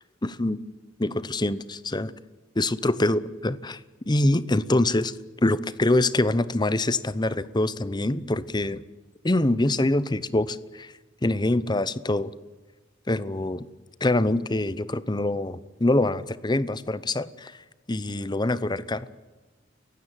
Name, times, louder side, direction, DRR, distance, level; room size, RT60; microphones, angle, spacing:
voice 1, 0.2-0.6 1.0-2.1 2.6-3.8 4.1-5.1 5.4-8.8 9.2-10.9 11.2-12.3 13.1-13.7 14.0-17.5 17.9-19.1, left 2 dB, 20° left, 16 dB, 0.8 m, -24 dB
29.5 x 16.0 x 9.1 m, 1.2 s
head